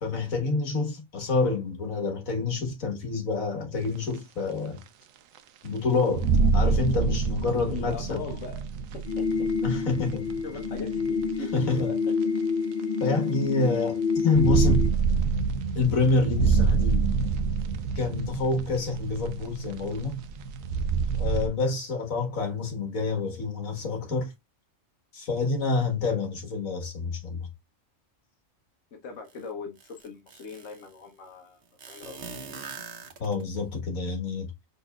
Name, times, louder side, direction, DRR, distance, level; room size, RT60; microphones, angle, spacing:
voice 1, 0.0-4.8 5.6-6.3 6.5-8.2 9.6-10.3 11.5-11.9 13.0-14.9 15.8-17.1 18.0-20.2 21.2-24.3 25.1-27.5 33.2-34.5, left 3 dB, 85° left, 1.9 m, -27 dB
sound 1, 3.8-3.9 4.7-4.8 5.4-5.5 6.2-11.3 12.2-12.3 14.1-21.5, right 5 dB, 80° right, 1.0 m, -27 dB
voice 2, 7.7-8.6 8.9-9.3 10.4-12.0 29.0-31.6 31.9-32.2, left 5 dB, 70° left, 1.3 m, -40 dB
sound 2, 9.0-14.9, left 5 dB, 40° left, 0.8 m, -28 dB
sound 3, 29.3-29.4 29.8-30.9 31.8-33.6, right 5 dB, 55° right, 1.1 m, -42 dB
5.4 x 4.1 x 2.3 m
omnidirectional pair, 1.4 m